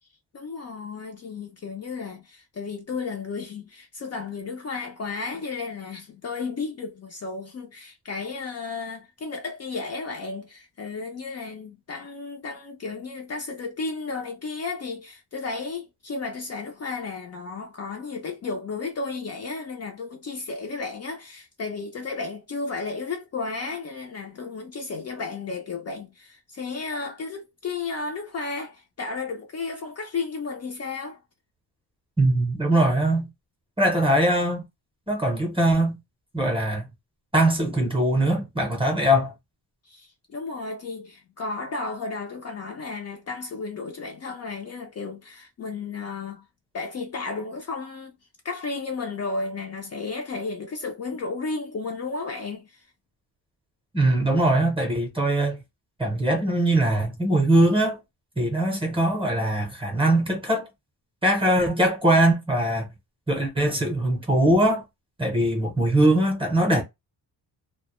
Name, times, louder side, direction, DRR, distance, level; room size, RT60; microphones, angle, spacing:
voice 1, 0.3-31.2 39.9-46.5 46.7-48.1 48.4-52.8, left 4 dB, 40° left, 0.4 m, -33 dB
voice 2, 32.2-33.3 33.8-34.7 35.1-36.0 36.3-36.9 37.3-39.3 53.9-55.6 56.0-58.0 58.4-60.6 61.2-62.9 63.3-64.8 65.2-66.8, right 1 dB, 15° right, 0.6 m, -21 dB
2.1 x 2.1 x 2.9 m
wide cardioid pair, 170°, 40 cm